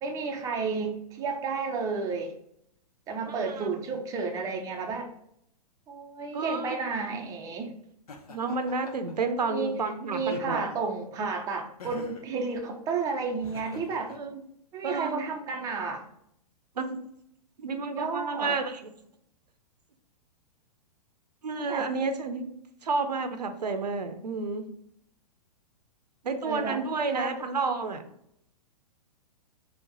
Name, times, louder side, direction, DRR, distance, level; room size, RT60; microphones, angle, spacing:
voice 1, 0.0-2.3 3.1-5.1 5.9-7.7 9.4-14.1 14.7-16.0 18.0-18.6 21.7-21.9 26.4-26.8 27.1-27.3, right 4 dB, 15° right, 3 dB, 0.4 m, -32 dB
voice 2, 3.3-3.7 6.3-6.8 8.3-10.6 14.1-14.4 14.8-15.2 16.8-17.0 17.6-18.9 21.4-22.5 22.8-24.6 26.2-28.0, right 4 dB, 80° right, 8 dB, 0.6 m, -30 dB
Laughter, 8.1-9.1 10.2-10.9 11.8-12.3 13.4-14.2, left 3 dB, 65° left, 0.6 m, -45 dB
4.1 x 2.1 x 3.8 m, 0.72 s
figure-of-eight pair, 110°, 21 cm